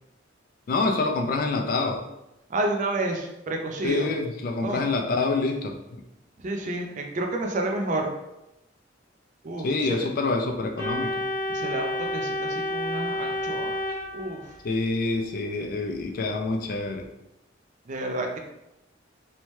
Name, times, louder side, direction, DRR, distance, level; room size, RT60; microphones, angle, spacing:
voice 1, 0.7-2.0 3.8-6.0 9.6-11.3 14.6-17.1, left 3 dB, 50° left, 4 dB, 0.3 m, -26 dB
voice 2, 2.5-4.1 4.6-4.9 6.4-8.1 9.4-10.1 11.5-13.8 14.1-14.5 17.9-18.4, right 2 dB, 40° right, 2 dB, 0.4 m, -30 dB
Organ, 10.8-14.7, left 1 dB, 70° right, 0.9 m, -30 dB
2.7 x 2.1 x 3.1 m, 0.92 s
head